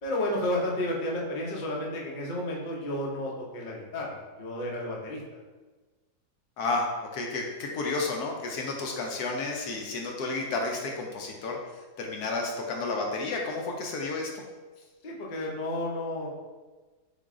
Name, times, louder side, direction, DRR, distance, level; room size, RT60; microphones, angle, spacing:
voice 1, 0.0-5.2 15.0-16.3, left 1 dB, 40° left, -3 dB, 0.7 m, -32 dB
voice 2, 6.6-11.6 12.0-14.3, left 3 dB, 75° left, 0 dB, 1.2 m, -31 dB
3.8 x 3.6 x 3.6 m, 1.3 s
omnidirectional pair, 1.7 m